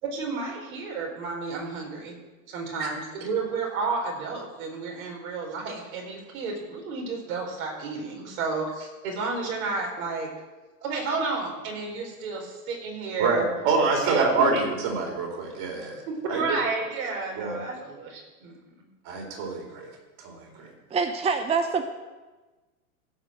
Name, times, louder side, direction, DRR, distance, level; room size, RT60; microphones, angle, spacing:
voice 1, 0.0-2.2 2.5-10.3 10.8-13.5 14.0-14.6 16.1-18.9, right 4 dB, 65° right, -1 dB, 4.7 m, -31 dB
voice 2, 13.2-16.0 16.3-16.6 17.4-17.6 19.0-19.9 20.2-20.7, right 4 dB, 50° right, 1 dB, 4.1 m, -26 dB
voice 3, 20.9-21.9, right 5 dB, 15° right, 8 dB, 0.7 m, -25 dB
15.5 x 5.5 x 7.7 m, 1.2 s
hypercardioid pair, 115°, 44 cm